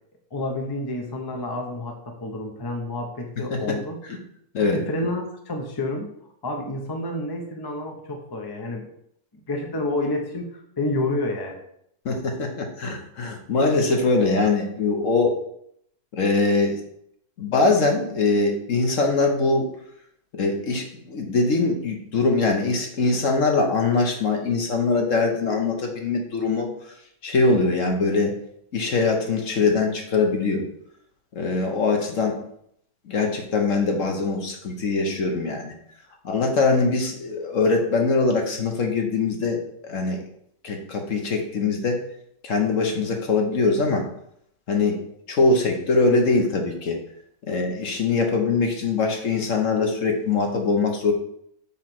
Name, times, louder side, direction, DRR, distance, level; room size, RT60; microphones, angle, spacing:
voice 1, 0.3-4.0 4.7-6.1 6.4-8.9 9.5-11.6, left 2 dB, 20° left, 2 dB, 0.8 m, -29 dB
voice 2, 12.0-15.4 16.1-16.8 17.4-19.7 20.3-26.7 27.2-28.3 28.7-30.6 31.3-32.4 33.1-35.7 36.2-39.6 39.8-40.2 40.6-42.0 42.4-44.1 44.7-45.0 45.3-47.0 47.5-51.1, left 3 dB, 55° left, 2 dB, 1.4 m, -22 dB
7.3 x 3.3 x 5.9 m, 0.70 s
omnidirectional pair, 1.6 m